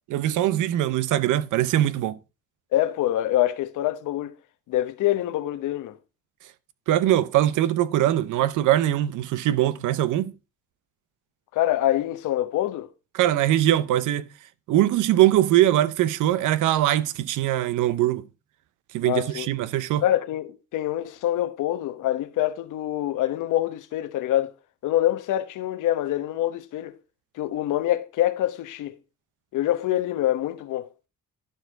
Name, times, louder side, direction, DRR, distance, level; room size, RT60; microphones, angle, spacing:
voice 1, 0.1-2.2 6.9-10.3 13.1-14.3 14.7-18.3 18.9-20.0, right 13 dB, 85° right, 0.7 m, -22 dB
voice 2, 2.7-4.3 4.7-6.0 11.5-12.9 19.0-19.5 20.0-24.5 24.8-26.9 27.3-29.0 29.5-30.9, left 13 dB, 85° left, 1.0 m, -25 dB
12.0 x 4.7 x 4.5 m
cardioid pair, 90°, 30 cm